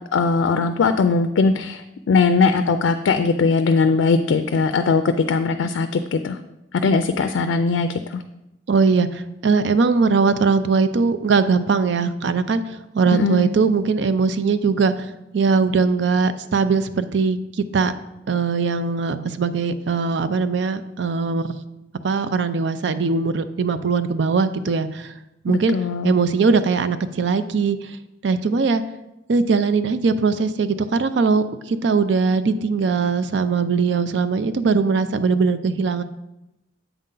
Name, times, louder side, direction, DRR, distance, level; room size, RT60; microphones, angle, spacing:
voice 1, 0.1-6.4 6.7-8.2 13.1-13.5 25.5-26.1, left 4 dB, 85° left, 9 dB, 0.4 m, -20 dB
voice 2, 8.7-17.4 17.7-17.9 18.3-21.5 22.0-25.1 25.4-25.7 26.0-28.0 28.2-28.8 29.3-36.0, right 4 dB, 65° right, 11 dB, 0.4 m, -20 dB
8.0 x 3.8 x 5.4 m, 0.91 s
head